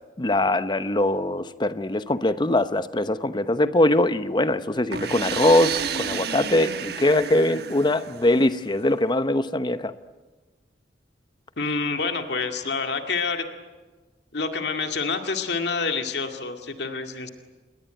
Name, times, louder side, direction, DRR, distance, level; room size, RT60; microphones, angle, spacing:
voice 1, 0.2-9.9, left 1 dB, 25° left, 12 dB, 0.9 m, -22 dB
sound 1, 4.9-8.7, right 6 dB, 65° right, 1.2 m, -31 dB
voice 2, 11.6-13.5 14.3-17.3, left 4 dB, 75° left, 5 dB, 2.2 m, -27 dB
27.5 x 21.5 x 9.1 m, 1.3 s
head